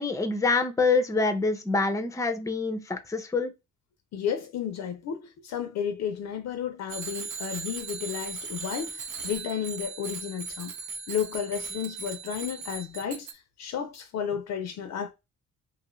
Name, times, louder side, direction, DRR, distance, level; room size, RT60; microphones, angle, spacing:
voice 1, 0.0-3.5, left 3 dB, 10° left, 0.5 m, -26 dB
voice 2, 4.1-10.7 11.1-13.3 13.6-15.1, left 8 dB, 60° left, 0.5 m, -32 dB
Bicycle bell, 6.9-13.3, right 5 dB, 85° right, 0.7 m, -38 dB
2.6 x 2.4 x 2.9 m
cardioid pair, 90°, 30 cm